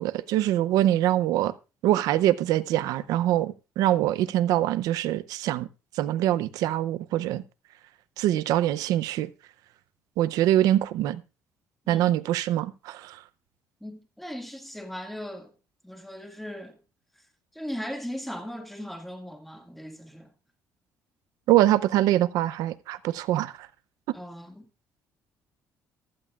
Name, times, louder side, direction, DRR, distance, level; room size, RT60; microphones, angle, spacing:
voice 1, 0.0-1.5 1.8-5.7 5.9-7.4 8.2-9.3 10.2-11.2 11.9-13.2 21.5-23.7, right 13 dB, 85° right, 0.6 m, -24 dB
voice 2, 11.9-12.2 13.8-15.5 15.8-16.8 17.5-20.3 24.1-24.7, equal, 5° left, 2.0 m, -38 dB
15.0 x 12.0 x 2.4 m
cardioid pair, 110°, 6 cm